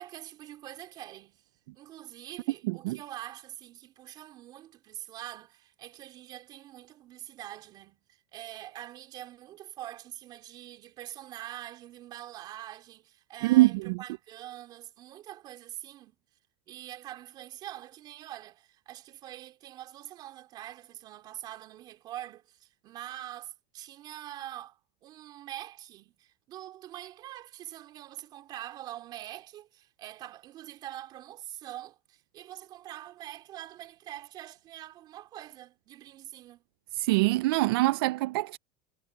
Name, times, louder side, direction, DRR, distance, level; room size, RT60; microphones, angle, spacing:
voice 1, 0.0-1.4 1.7-16.2 16.7-36.6, right 13 dB, 35° right, 3.7 m, -44 dB
voice 2, 2.6-3.0 13.4-14.0 37.0-38.6, right 19 dB, 80° right, 0.4 m, -24 dB
cardioid pair, 170°, 12 cm